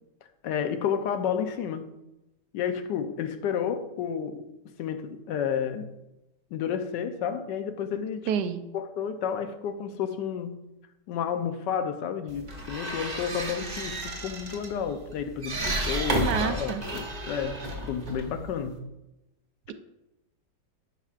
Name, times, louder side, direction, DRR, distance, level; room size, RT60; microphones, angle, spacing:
voice 1, 0.4-1.9 2.5-4.5 4.8-5.9 6.5-8.3 8.7-10.6 11.1-18.8, left 8 dB, 80° left, 1.3 m, -31 dB
voice 2, 8.3-8.6 16.1-16.8, right 8 dB, 75° right, 1.2 m, -28 dB
sound 1, 12.3-18.8, right 1 dB, 30° right, 0.9 m, -33 dB
9.9 x 5.8 x 2.4 m
omnidirectional pair, 1.9 m